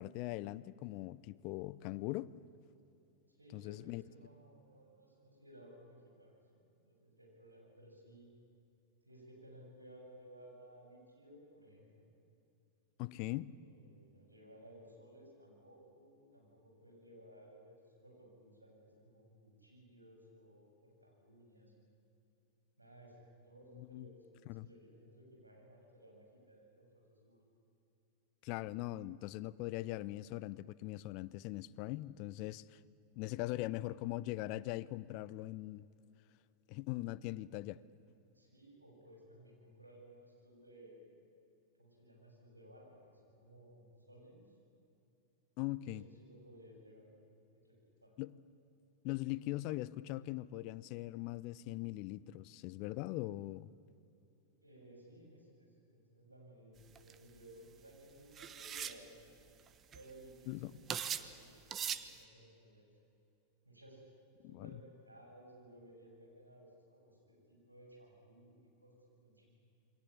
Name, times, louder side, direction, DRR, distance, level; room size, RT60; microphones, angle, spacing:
voice 1, 0.0-2.3 3.5-4.0 13.0-13.6 23.7-24.1 24.5-24.7 28.4-32.8 33.2-35.9 36.7-37.8 45.6-46.0 48.2-48.4 49.0-53.7 60.5-60.8 64.4-64.7, left 17 dB, 45° left, 0.6 m, -41 dB
voice 2, 3.3-8.3 9.0-12.1 13.5-21.7 22.8-23.2 23.4-27.4 38.3-41.2 41.8-44.5 45.8-47.1 47.5-48.1 54.6-59.4 59.9-61.6 61.9-62.8 63.6-64.0 64.5-69.5, right 1 dB, 85° right, 7.4 m, -59 dB
sound 1, 57.0-57.1 58.4-59.0 59.7-59.8 59.9-60.3 60.9-61.3 61.7-62.1, right 8 dB, 25° right, 1.1 m, -39 dB
28.5 x 23.0 x 8.7 m
figure-of-eight pair, 90°, 0 cm